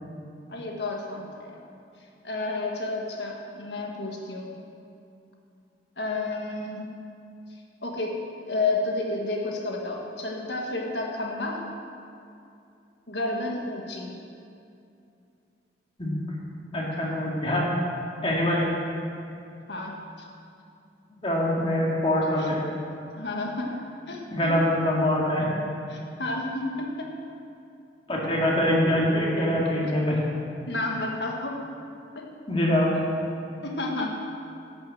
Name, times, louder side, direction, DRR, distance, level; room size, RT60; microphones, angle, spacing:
voice 1, 0.5-1.6 2.2-4.5 6.0-6.9 7.8-8.2 8.5-11.6 13.1-14.1 19.7-20.3 22.4-22.5 23.2-23.7 24.1-24.6 25.9-27.1 30.7-31.6 32.1-32.3 33.6-34.1, left 2 dB, 65° left, 0 dB, 1.6 m, -31 dB
voice 2, 16.7-17.7 18.2-18.7 21.2-22.6 24.3-25.5 28.1-30.2 32.5-32.9, left 1 dB, 30° left, -4 dB, 2.1 m, -24 dB
11.5 x 6.8 x 7.7 m, 2.6 s
head